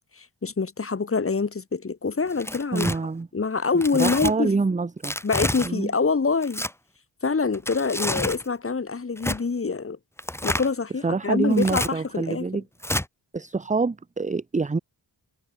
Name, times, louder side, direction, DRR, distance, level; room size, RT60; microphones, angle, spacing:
voice 1, 0.2-2.9 3.3-4.5 5.2-6.6 7.2-10.0 10.4-12.5, left 4 dB, 30° left, 1.5 m, -25 dB
Tearing, 2.3-3.0 3.8-4.3 5.0-5.7 6.4-6.7 7.5-8.4 9.2-9.4 10.2-10.7 11.5-11.9 12.8-13.1, left 1 dB, 5° left, 1.1 m, -28 dB
voice 2, 2.7-3.3 4.0-5.1 5.7-5.9 11.0-12.6 13.3-14.8, right 4 dB, 20° right, 0.6 m, -26 dB
wide cardioid pair, 175°, 43 cm